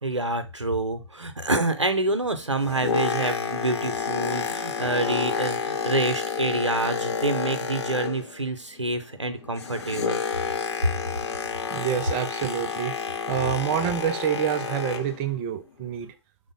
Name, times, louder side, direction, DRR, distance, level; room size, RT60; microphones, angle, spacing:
voice 1, 0.0-10.2, right 2 dB, 90° right, 9 dB, 0.6 m, -27 dB
Boat Water vehicle, 2.4-8.5 8.8-15.2 15.9-16.0, left 5 dB, 65° left, 0.8 m, -30 dB
voice 2, 11.7-12.9 13.3-16.1, right 9 dB, 25° right, 10 dB, 0.5 m, -27 dB
4.9 x 2.1 x 4.0 m, 0.29 s
figure-of-eight pair, 120°, 15 cm